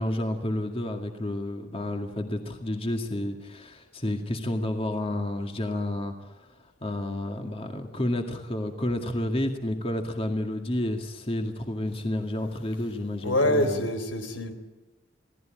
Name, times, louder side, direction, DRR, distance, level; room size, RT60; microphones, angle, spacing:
voice 1, 0.0-6.5 6.8-13.9, left 1 dB, 30° left, 4 dB, 2.2 m, -30 dB
voice 2, 13.2-14.5, left 1 dB, 85° left, 9 dB, 3.9 m, -25 dB
28.5 x 18.0 x 9.0 m, 1.1 s
head